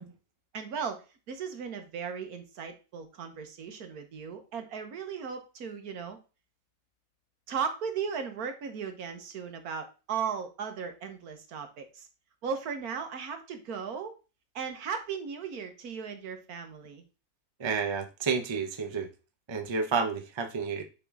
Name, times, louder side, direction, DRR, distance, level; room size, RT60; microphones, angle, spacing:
voice 1, 0.5-6.2 7.5-12.1 12.4-14.1 14.5-17.0, right 6 dB, 80° right, 1.5 m, -36 dB
voice 2, 17.6-19.1 19.5-20.8, right 5 dB, 30° right, 0.5 m, -30 dB
7.0 x 3.8 x 3.6 m
omnidirectional pair, 1.6 m